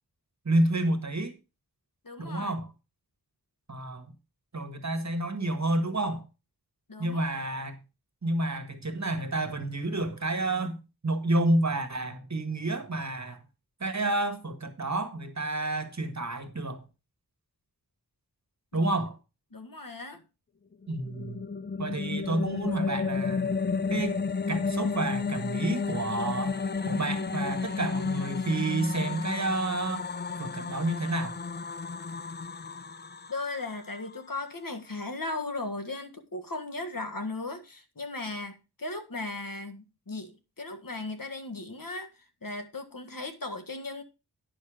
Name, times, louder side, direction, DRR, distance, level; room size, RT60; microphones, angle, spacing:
voice 1, 0.4-1.4 2.2-2.7 3.7-4.1 4.5-6.2 7.0-7.8 8.2-10.8 11.0-13.4 13.8-16.8 18.7-19.2 20.9-21.4 21.8-23.5 23.9-24.2 24.5-26.6 26.8-30.1 30.4-31.4, right 2 dB, 45° right, 1.7 m, -29 dB
voice 2, 2.0-2.6 6.9-7.2 18.7-19.0 19.5-20.2 33.3-42.1 42.4-44.0, left 2 dB, 55° left, 1.6 m, -37 dB
sound 1, 20.8-34.2, left 5 dB, 25° left, 0.4 m, -32 dB
9.9 x 6.5 x 5.0 m
wide cardioid pair, 60°, 39 cm